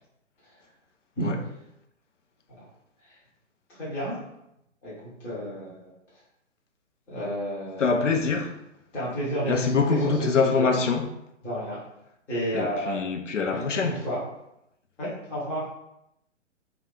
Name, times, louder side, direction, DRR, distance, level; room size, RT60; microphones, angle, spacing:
voice 1, 3.7-4.2 4.8-4.9 5.2-5.9 7.1-8.0 8.9-10.8 11.4-11.8 12.3-13.1 13.5-14.2 15.0-15.7, right 1 dB, 5° left, 0.5 m, -31 dB
voice 2, 7.8-8.6 9.5-11.0 12.5-14.0, left 5 dB, 75° left, 0.5 m, -24 dB
2.7 x 2.3 x 3.5 m
figure-of-eight pair, 120°, 37 cm